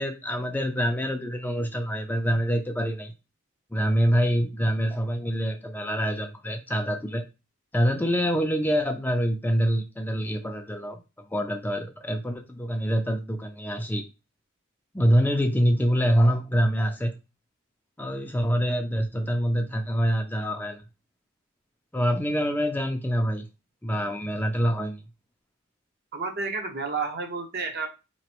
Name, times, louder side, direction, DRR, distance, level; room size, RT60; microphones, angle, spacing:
voice 1, 0.0-3.1 3.7-7.2 7.7-11.0 11.3-14.0 14.9-17.1 18.0-20.8 21.9-23.5 23.8-25.0, equal, 10° left, 4 dB, 0.4 m, -25 dB
voice 2, 26.1-27.9, right 4 dB, 55° right, 3 dB, 0.9 m, -30 dB
4.2 x 3.0 x 2.9 m, 0.27 s
head